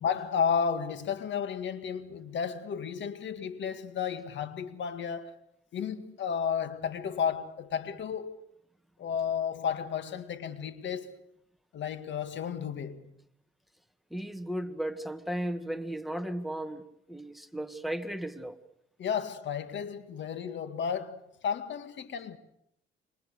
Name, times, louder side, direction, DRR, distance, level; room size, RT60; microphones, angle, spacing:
voice 1, 0.0-5.4 5.7-8.4 9.0-11.1 11.7-13.1 19.0-22.4, left 7 dB, 65° left, 2.0 m, -33 dB
voice 2, 14.1-16.8 17.1-18.6, right 1 dB, ahead, 1.7 m, -35 dB
27.5 x 24.5 x 6.8 m
cardioid pair, 90°, 20 cm